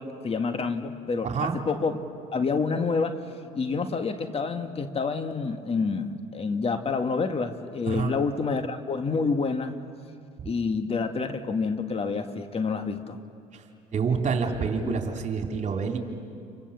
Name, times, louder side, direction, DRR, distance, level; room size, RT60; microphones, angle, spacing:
voice 1, 0.0-2.0 2.3-3.2 3.5-9.8 10.4-13.2 14.8-15.0, left 4 dB, 35° left, 7 dB, 1.9 m, -28 dB
voice 2, 1.2-1.6 7.9-8.1 10.4-10.5 13.5-13.6 13.9-16.0, right 5 dB, 45° right, 3 dB, 3.5 m, -27 dB
29.0 x 24.0 x 7.2 m, 2.4 s
hypercardioid pair, 70°, 17 cm